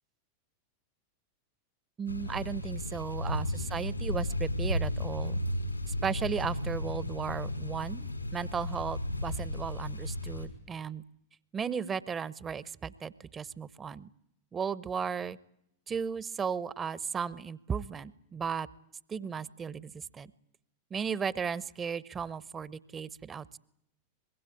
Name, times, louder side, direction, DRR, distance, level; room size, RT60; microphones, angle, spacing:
voice 1, 2.0-5.4 5.9-11.0 11.5-14.1 14.5-15.4 15.9-18.7 19.1-20.3 20.9-23.5, right 6 dB, 20° right, 20 dB, 0.9 m, -35 dB
sound 1, 2.1-10.5, left 1 dB, 90° left, 5.0 m, -34 dB
24.5 x 21.5 x 8.7 m, 0.78 s
figure-of-eight pair, 90°, 0 cm